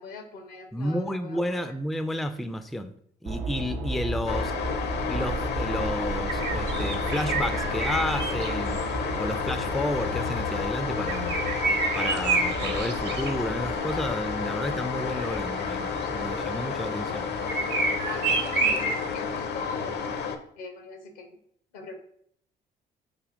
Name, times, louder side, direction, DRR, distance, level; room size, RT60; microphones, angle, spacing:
voice 1, 0.0-1.4 18.0-20.0 20.6-21.4 21.7-22.0, left 4 dB, 85° left, 4 dB, 0.8 m, -40 dB
voice 2, 0.7-2.9 3.2-4.5 5.1-8.8 9.1-11.4 11.9-17.3, left 1 dB, ahead, 10 dB, 0.3 m, -31 dB
sound 1, 3.2-16.8, right 1 dB, 80° right, 0.7 m, -35 dB
sound 2, 4.3-20.4, left 6 dB, 55° left, 0.5 m, -31 dB
sound 3, 6.3-19.4, right 3 dB, 55° right, 0.9 m, -31 dB
6.1 x 2.7 x 2.5 m, 0.67 s
hypercardioid pair, 50°, 21 cm